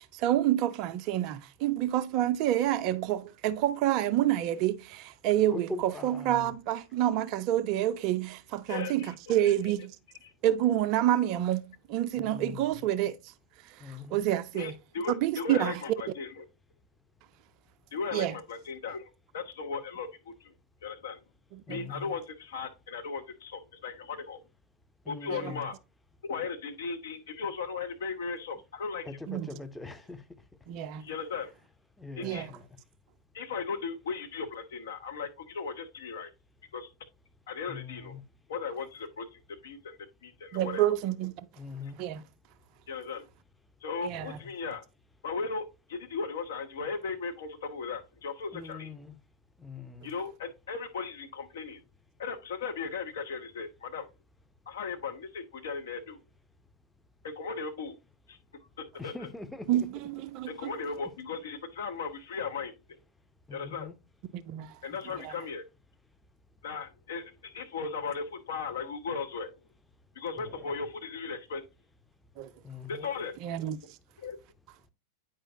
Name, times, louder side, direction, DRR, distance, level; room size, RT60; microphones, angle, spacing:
voice 1, 0.2-9.0 9.3-9.9 10.4-11.6 11.9-13.2 14.1-14.7 15.2-15.7 18.1-18.3 21.7-21.8 29.3-29.5 30.7-31.0 32.2-32.5 40.5-41.3 42.0-42.2 44.0-44.2 59.7-60.5 64.5-64.7 72.4-72.5 73.4-73.8, right 12 dB, 40° right, 0.4 m, -28 dB
voice 2, 5.5-6.5 12.2-12.8 13.8-14.2 21.7-22.1 25.1-25.7 29.1-30.2 32.0-32.6 37.7-38.2 41.6-42.0 48.5-49.1 49.6-50.1 59.0-59.9 63.5-63.9 70.4-70.5 72.6-73.0, left 3 dB, 5° left, 0.6 m, -42 dB
voice 3, 8.7-9.7 10.2-10.3 14.5-16.5 17.9-20.5 20.8-21.2 21.7-24.4 25.1-25.8 26.2-29.2 31.0-31.5 32.2-32.5 33.3-36.3 36.7-36.9 37.5-38.1 38.5-40.9 41.8-41.9 42.9-43.3 43.8-44.8 45.2-48.9 50.0-51.8 52.2-54.1 54.7-56.2 57.2-58.0 58.3-58.4 58.8-59.3 60.5-63.0 63.5-63.9 64.8-65.6 66.6-69.5 70.1-71.6 72.9-73.3 74.2-74.4, left 5 dB, 60° left, 0.8 m, -37 dB
8.8 x 4.8 x 2.7 m
figure-of-eight pair, 90°, 0 cm